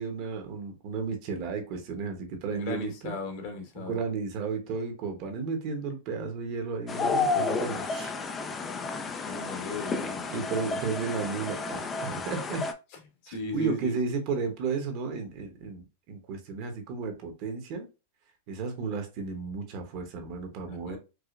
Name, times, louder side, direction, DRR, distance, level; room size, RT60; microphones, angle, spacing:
voice 1, 0.0-3.1 3.8-8.1 10.3-12.6 13.3-17.9 18.5-21.0, right 4 dB, 45° right, 1.0 m, -33 dB
voice 2, 2.5-4.0 9.1-10.3 13.2-14.1 20.7-21.0, left 2 dB, 50° left, 1.3 m, -37 dB
sound 1, 6.9-12.7, left 4 dB, 20° left, 0.4 m, -31 dB
4.8 x 2.1 x 2.5 m
supercardioid pair, 140°, 0 cm